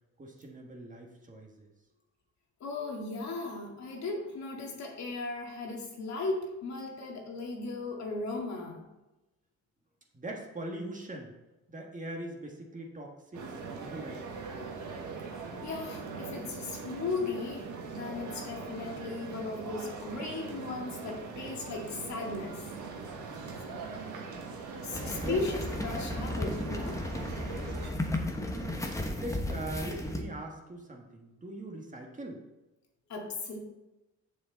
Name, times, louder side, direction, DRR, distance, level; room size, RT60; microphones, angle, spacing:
voice 1, 0.2-1.7 10.1-11.3 11.7-14.5 23.8-24.4 25.2-25.4 28.5-28.9 29.2-32.4, right 1 dB, 25° right, 0 dB, 1.6 m, -42 dB
voice 2, 2.6-8.8 15.6-22.6 24.8-27.0 33.1-33.6, left 3 dB, 65° left, 0 dB, 2.0 m, -36 dB
sound 1, 13.3-27.9, right 4 dB, 75° right, 1.6 m, -41 dB
sound 2, 24.9-30.2, left 1 dB, 10° left, 1.1 m, -34 dB
6.9 x 6.8 x 4.0 m, 1.0 s
cardioid pair, 90°, 30 cm